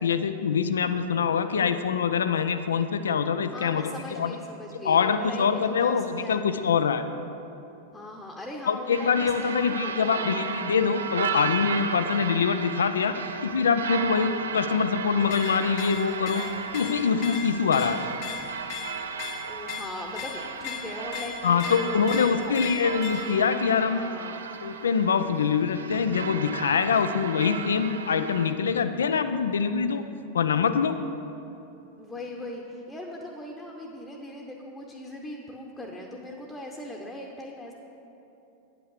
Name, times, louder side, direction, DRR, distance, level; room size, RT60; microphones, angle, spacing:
voice 1, 0.0-4.4 4.8-7.0 8.7-13.2 13.4-16.4 16.7-18.0 21.4-24.0 24.6-30.0 30.3-31.0, left 6 dB, 70° left, 10 dB, 0.4 m, -24 dB
voice 2, 3.5-6.5 7.9-10.3 14.1-14.3 19.4-22.6 23.7-24.5 32.0-37.7, left 1 dB, 10° left, 0 dB, 1.0 m, -39 dB
sound 1, 8.9-28.5, right 6 dB, 75° right, 0.5 m, -35 dB
sound 2, 15.2-23.5, left 9 dB, 45° left, 0.8 m, -39 dB
9.6 x 5.9 x 6.6 m, 2.9 s
figure-of-eight pair, 90°, 0 cm